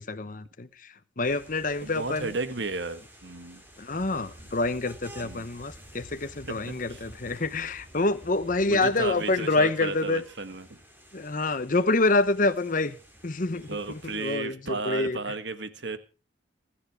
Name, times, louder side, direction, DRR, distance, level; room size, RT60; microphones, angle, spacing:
voice 1, 0.0-2.3 3.8-10.2 11.1-13.0 13.2-15.2, left 2 dB, 40° left, 0.9 m, -27 dB
sound 1, 1.2-14.4, right 1 dB, 10° right, 3.2 m, -53 dB
voice 2, 1.8-3.6 5.2-5.4 6.9-7.0 8.6-10.8 13.5-16.0, right 3 dB, 65° right, 1.6 m, -34 dB
sound 2, 3.9-9.2, right 1 dB, 40° right, 3.4 m, -51 dB
21.0 x 10.5 x 4.7 m
head